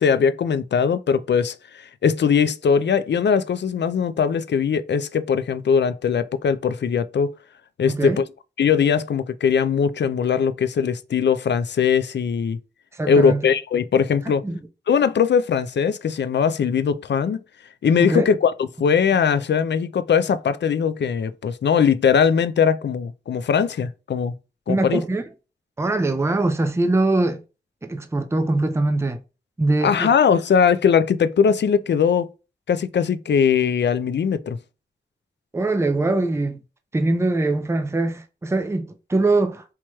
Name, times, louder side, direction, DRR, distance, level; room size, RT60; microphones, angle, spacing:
voice 1, 0.0-1.5 2.0-7.3 7.8-8.2 8.6-12.6 13.1-14.4 14.9-17.4 17.8-24.3 24.7-25.0 29.8-32.3 32.7-34.6, left 7 dB, 70° left, 0.4 m, -20 dB
voice 2, 7.9-8.2 12.9-13.5 14.4-14.6 18.0-18.3 24.7-25.2 25.8-27.4 27.8-29.2 29.6-30.1 35.5-36.6 36.9-39.6, right 2 dB, 15° right, 0.5 m, -22 dB
4.6 x 2.9 x 2.3 m
wide cardioid pair, 75°, 19 cm